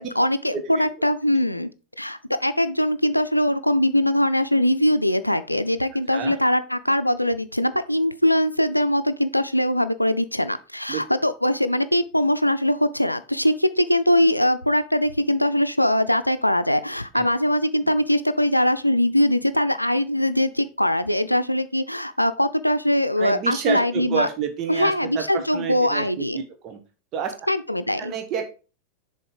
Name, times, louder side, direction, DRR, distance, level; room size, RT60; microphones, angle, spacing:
voice 1, 0.0-1.7 2.0-24.3 24.7-26.4 27.5-28.1, left 1 dB, 90° left, 12 dB, 0.5 m, -22 dB
voice 2, 0.5-0.9 6.1-6.3 10.9-11.0 17.1-17.2 17.8-17.9 23.2-26.8 27.1-27.3 28.0-28.4, right 7 dB, 35° right, 6 dB, 1.1 m, -29 dB
6.9 x 4.2 x 5.0 m, 0.35 s
figure-of-eight pair, 90°, 0 cm